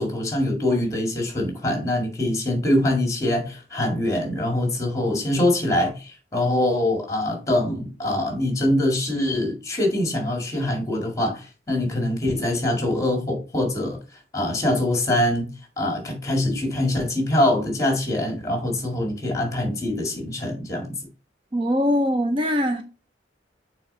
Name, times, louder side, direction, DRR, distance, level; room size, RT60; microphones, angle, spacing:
voice 1, 0.0-14.0 14.3-15.5 15.8-20.9, left 1 dB, 20° left, 1.9 m, -24 dB
voice 2, 21.5-22.8, equal, 30° right, 0.5 m, -22 dB
6.4 x 4.2 x 4.1 m
head